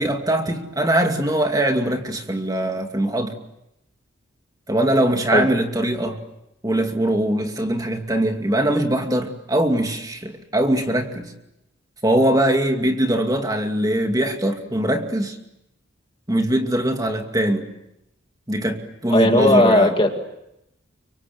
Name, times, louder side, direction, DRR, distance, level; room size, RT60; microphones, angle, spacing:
voice 1, 0.0-3.4 4.7-6.2 6.6-11.3 12.0-15.4 16.3-17.7 18.5-20.0, right 1 dB, 20° right, 4 dB, 2.4 m, -21 dB
voice 2, 19.1-20.2, left 1 dB, 25° left, 5 dB, 2.1 m, -16 dB
30.0 x 25.0 x 7.9 m, 0.84 s
head